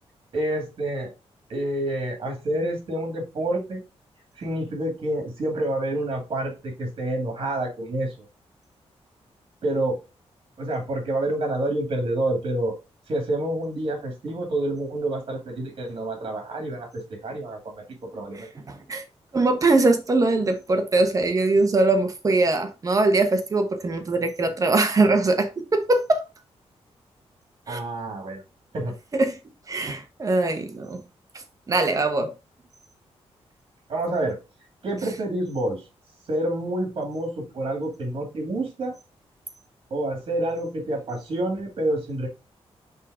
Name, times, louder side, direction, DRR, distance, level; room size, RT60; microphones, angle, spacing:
voice 1, 0.3-1.1 1.5-3.8 4.4-8.1 9.6-10.0 10.6-12.8 13.1-18.5 27.7-28.4 28.7-28.9 33.9-34.4 34.8-35.8 36.3-39.0 39.9-42.3, right 1 dB, 50° right, 2.3 m, -28 dB
voice 2, 18.3-19.0 19.3-26.2 27.7-27.8 29.1-29.4 29.7-31.0 31.7-32.3, right 2 dB, 30° right, 1.0 m, -22 dB
5.5 x 3.8 x 4.8 m
wide cardioid pair, 145°, 11 cm